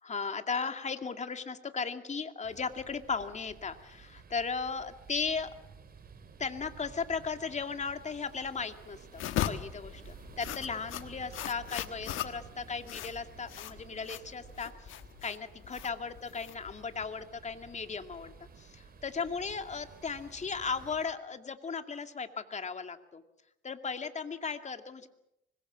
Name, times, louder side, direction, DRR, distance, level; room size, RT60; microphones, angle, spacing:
voice 1, 0.0-5.5 6.4-14.9 15.2-23.2 23.6-25.1, left 5 dB, 35° left, 7 dB, 2.3 m, -36 dB
sound 1, 2.4-21.1, right 5 dB, 50° right, 4.6 m, -53 dB
sound 2, 9.1-17.0, left 12 dB, 85° left, 1.4 m, -38 dB
25.0 x 21.5 x 7.5 m, 0.85 s
cardioid pair, 90°, 20 cm